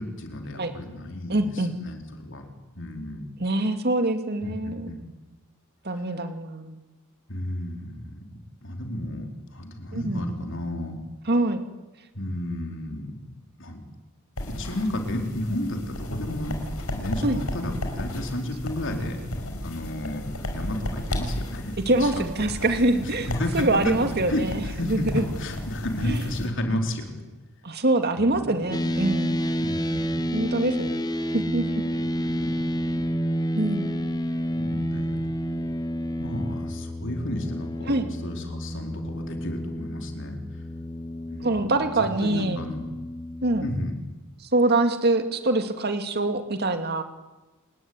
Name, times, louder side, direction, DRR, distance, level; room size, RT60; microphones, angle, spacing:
voice 1, 0.0-2.5 2.8-3.2 4.4-5.0 5.9-6.0 7.3-11.0 12.1-13.1 13.6-13.8 14.5-16.6 16.9-19.2 19.6-22.2 23.3-23.9 24.3-27.2 28.2-28.5 29.6-30.2 31.9-32.5 32.8-33.1 34.5-35.2 36.2-37.9 38.2-40.6 41.3-41.7 42.2-42.9 43.6-44.0, left 1 dB, 60° left, 4 dB, 4.4 m, -32 dB
voice 2, 1.3-1.7 3.4-4.9 5.8-6.8 9.9-10.3 11.3-11.6 17.2-17.4 21.9-23.3 23.5-24.6 24.9-25.2 26.1-26.2 27.6-29.4 30.3-31.0 31.3-31.8 33.5-33.9 37.9-38.1 41.4-42.6 43.4-43.7 44.4-47.0, right 2 dB, 50° right, 7 dB, 2.3 m, -24 dB
sound 1, 14.4-26.5, left 1 dB, 90° left, 5.5 m, -34 dB
sound 2, 28.7-43.8, equal, 20° left, 1.3 m, -29 dB
29.0 x 20.0 x 9.7 m, 1.1 s
head